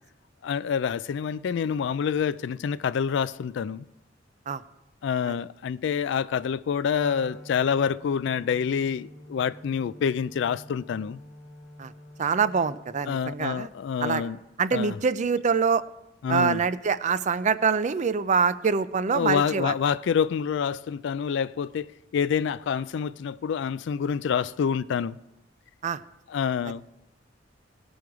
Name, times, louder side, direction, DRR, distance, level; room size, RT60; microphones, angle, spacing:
voice 1, 0.4-3.9 5.0-11.2 13.1-14.4 14.7-15.0 16.2-16.6 19.1-21.9 22.1-25.2 26.3-26.8, left 7 dB, 70° left, 0.3 m, -27 dB
Wind instrument woodwind instrument, 6.9-13.3, equal, 15° left, 1.2 m, -47 dB
voice 2, 12.2-13.7 14.0-14.3 14.6-15.8 16.3-19.7 25.8-26.0 26.6-26.7, right 5 dB, 40° right, 0.4 m, -25 dB
18.5 x 6.3 x 4.7 m
head